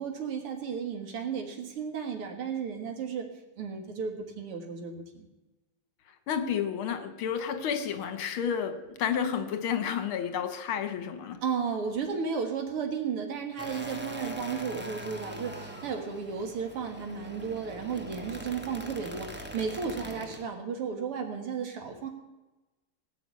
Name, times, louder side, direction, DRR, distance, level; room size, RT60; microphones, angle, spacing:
voice 1, 0.0-3.2 3.6-5.3 11.4-22.1, right 6 dB, 90° right, 4 dB, 2.7 m, -34 dB
voice 2, 6.3-11.4, left 8 dB, 75° left, 10 dB, 1.9 m, -31 dB
sound 1, 13.6-20.4, equal, 15° right, 0.4 m, -42 dB
17.5 x 5.9 x 8.4 m, 1.1 s
omnidirectional pair, 2.4 m